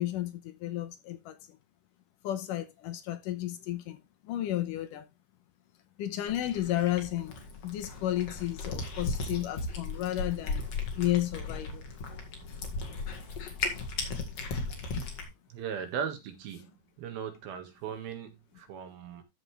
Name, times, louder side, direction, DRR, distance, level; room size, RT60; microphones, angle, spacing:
voice 1, 0.0-1.4 2.2-4.0 4.2-5.1 6.0-7.4 7.6-10.6 10.9-11.8, left 13 dB, 75° left, 2.3 m, -32 dB
Cat, 6.3-15.3, left 3 dB, 50° left, 2.6 m, -36 dB
voice 2, 15.5-16.7 17.0-19.2, right 8 dB, 85° right, 3.5 m, -38 dB
13.5 x 5.4 x 3.2 m
omnidirectional pair, 4.2 m